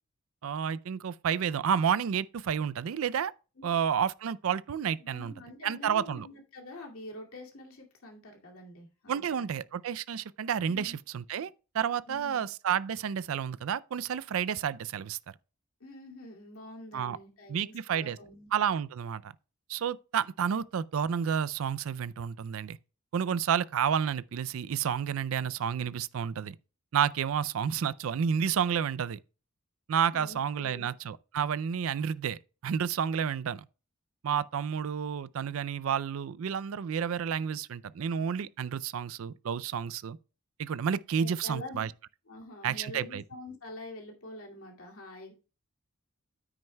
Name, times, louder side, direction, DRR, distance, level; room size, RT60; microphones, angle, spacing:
voice 1, 0.4-3.3 3.6-5.3 5.6-6.3 9.1-15.3 16.9-17.2 17.5-18.2 18.5-19.3 19.7-22.8 23.1-26.5 26.9-29.2 29.9-33.7 34.2-40.2 40.6-41.9 42.6-43.2, right 8 dB, 80° right, 0.4 m, -30 dB
voice 2, 5.0-9.5 10.7-10.9 12.1-12.4 15.8-18.5 30.1-30.9 41.2-41.9 42.3-45.3, left 1 dB, 85° left, 2.4 m, -46 dB
9.6 x 8.8 x 2.2 m
head